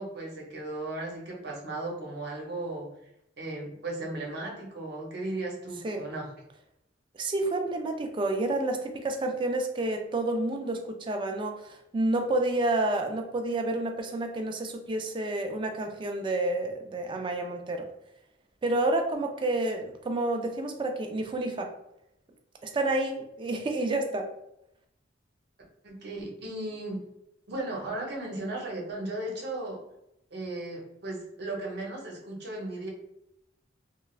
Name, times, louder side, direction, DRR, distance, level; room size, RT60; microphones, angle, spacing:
voice 1, 0.0-2.9 3.4-6.3 25.8-27.0 27.5-29.8 30.3-32.9, right 2 dB, 60° right, -1 dB, 0.8 m, -36 dB
voice 2, 7.1-17.9 18.6-21.7 22.6-24.3, right 2 dB, 25° right, 4 dB, 0.3 m, -29 dB
3.1 x 2.3 x 2.3 m, 0.83 s
head